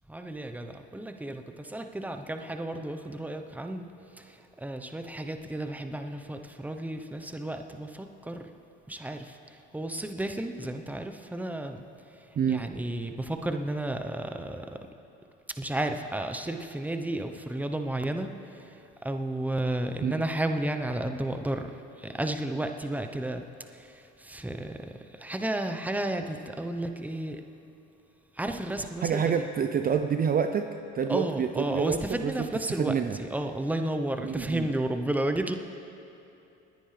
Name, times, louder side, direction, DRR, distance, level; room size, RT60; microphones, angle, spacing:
voice 1, 0.1-3.9 4.2-8.5 8.9-9.4 9.7-11.8 12.5-14.8 15.6-18.7 19.0-21.7 22.0-23.4 23.7-27.4 28.4-29.2 31.1-35.6, right 1 dB, 5° right, 7 dB, 0.9 m, -32 dB
voice 2, 28.8-30.7 30.9-33.2 34.2-34.7, right 7 dB, 30° right, 7 dB, 0.6 m, -28 dB
29.0 x 10.0 x 3.4 m, 2.8 s
supercardioid pair, 80°, 30 cm